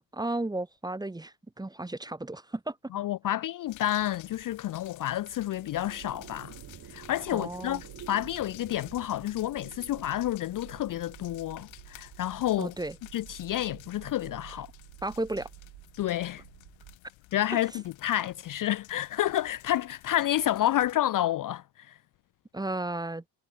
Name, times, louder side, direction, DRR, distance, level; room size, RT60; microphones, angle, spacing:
voice 1, 0.0-2.8 7.3-7.8 12.6-13.0 15.0-15.5 22.5-23.2, right 2 dB, 10° right, 1.0 m, -34 dB
voice 2, 2.9-6.5 6.9-12.7 13.1-14.7 16.0-16.4 17.3-22.0, left 13 dB, 45° left, 0.5 m, -30 dB
sound 1, 3.7-20.9, left 19 dB, 85° left, 1.7 m, -53 dB
sound 2, 5.0-15.5, right 9 dB, 40° right, 1.1 m, -53 dB
sound 3, 5.7-17.0, right 20 dB, 90° right, 5.2 m, -51 dB
cardioid pair, 100°, 46 cm